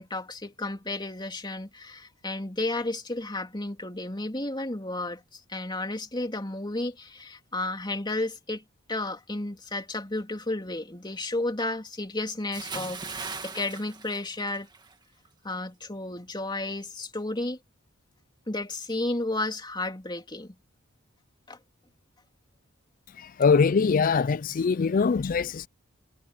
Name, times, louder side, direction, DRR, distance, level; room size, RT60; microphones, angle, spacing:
voice 1, 0.0-8.6 8.9-14.7 15.4-17.6 18.5-20.5 21.5-21.6, left 2 dB, 20° left, 3.4 m, -32 dB
Bathtub (filling or washing) / Splash splatter, 12.5-14.9 15.3-15.5, right 4 dB, 20° right, 1.9 m, -38 dB
voice 2, 23.2-25.7, left 5 dB, 40° left, 0.4 m, -23 dB
head